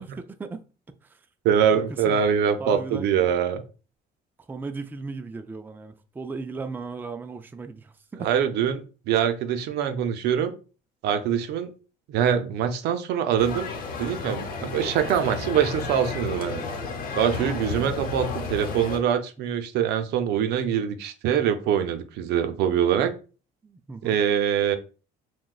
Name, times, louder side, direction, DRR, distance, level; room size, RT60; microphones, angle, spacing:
voice 1, 0.0-1.3 1.7-2.3 2.6-3.1 4.5-8.3 17.4-17.6 23.6-24.2, right 3 dB, 10° right, 0.3 m, -37 dB
voice 2, 1.4-3.6 8.2-10.5 11.0-11.7 12.1-13.7 14.0-16.6 17.2-23.1 24.0-24.8, right 8 dB, 80° right, 0.5 m, -24 dB
Ext Large Crowd at Sunnyside Pool, 13.4-19.0, left 4 dB, 55° left, 0.8 m, -32 dB
5.9 x 2.2 x 2.4 m
cardioid pair, 110°, 17 cm